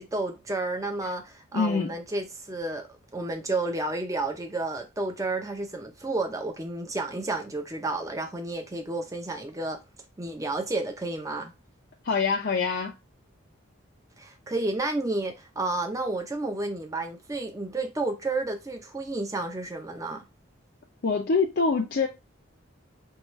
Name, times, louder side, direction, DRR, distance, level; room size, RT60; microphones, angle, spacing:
voice 1, 0.0-9.8 10.2-11.5 14.2-20.3, right 2 dB, 15° right, 0.5 m, -31 dB
voice 2, 1.5-1.9 12.0-12.9 21.0-22.1, left 4 dB, 50° left, 0.5 m, -25 dB
4.6 x 2.3 x 3.0 m
head